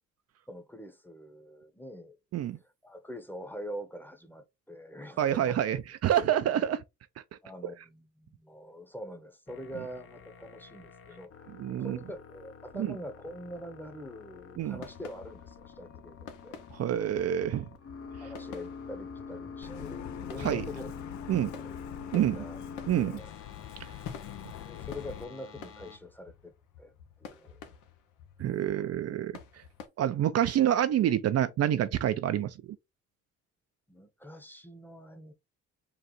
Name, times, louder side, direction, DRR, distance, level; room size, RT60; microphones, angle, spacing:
voice 1, 0.5-2.2 2.6-5.6 7.4-16.6 18.2-20.9 21.3-21.7 22.1-22.6 23.0-23.3 24.6-26.5 26.8-26.9 27.2-27.6 28.6-28.7 33.9-35.3, equal, 5° left, 0.9 m, -44 dB
voice 2, 5.2-6.8 11.6-12.0 12.8-12.9 14.6-14.8 16.7-17.7 20.4-20.7 21.3-21.5 22.1-22.3 22.9-23.2 28.4-29.3 30.0-32.5, right 11 dB, 55° right, 0.5 m, -27 dB
sound 1, 9.5-26.0, left 5 dB, 50° left, 0.8 m, -46 dB
sound 2, 14.7-29.9, left 7 dB, 90° left, 1.0 m, -50 dB
Truck, 19.6-25.2, left 12 dB, 70° left, 0.5 m, -44 dB
3.9 x 2.4 x 4.3 m
cardioid pair, 90°, 30 cm